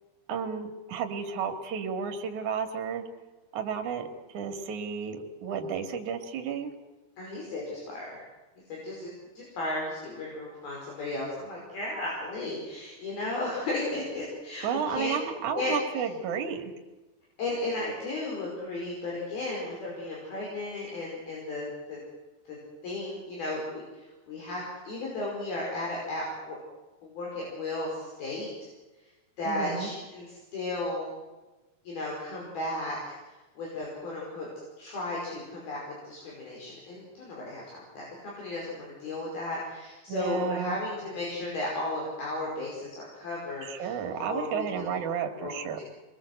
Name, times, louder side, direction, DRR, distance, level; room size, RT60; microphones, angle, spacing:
voice 1, 0.3-3.0 3.5-4.1 4.3-6.7 14.6-16.6 29.4-29.9 40.1-40.8 43.6-45.8, right 7 dB, 50° right, 4 dB, 3.2 m, -32 dB
voice 2, 7.2-8.2 8.7-15.1 15.5-15.7 17.4-22.0 22.5-22.6 22.8-26.6 27.0-28.5 29.4-30.3 30.5-31.1 31.9-33.2 33.6-34.5 34.8-44.9 45.4-45.8, left 2 dB, 55° left, -3 dB, 7.2 m, -34 dB
26.5 x 21.5 x 8.1 m, 1.1 s
omnidirectional pair, 5.2 m